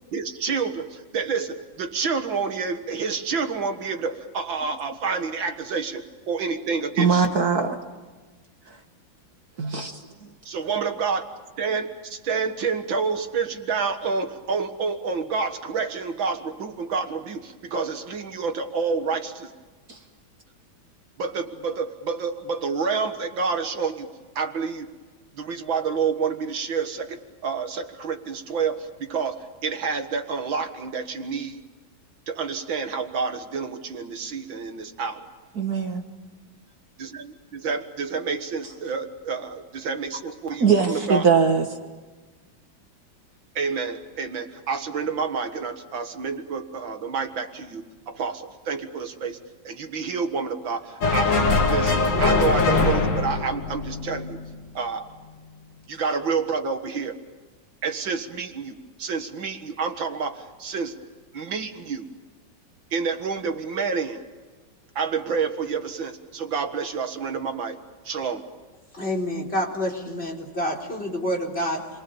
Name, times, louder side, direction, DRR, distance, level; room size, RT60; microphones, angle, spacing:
voice 1, 0.0-7.4 10.5-11.2 11.6-19.5 21.2-24.1 24.4-24.9 25.4-31.6 32.3-35.3 37.0-41.3 43.6-49.4 49.6-54.4 54.7-55.1 55.9-57.2 57.8-61.0 61.3-62.1 62.9-64.2 65.0-67.8 68.0-68.4, right 5 dB, 75° right, 2.4 m, -28 dB
voice 2, 7.0-7.8 9.6-10.0 19.9-20.0 35.6-36.0 40.6-41.7, right 5 dB, 50° right, 2.0 m, -21 dB
sound 1, 51.0-54.5, left 3 dB, 65° left, 2.9 m, -22 dB
voice 3, 68.9-71.9, equal, 30° left, 4.5 m, -28 dB
29.0 x 23.5 x 7.1 m
omnidirectional pair, 2.1 m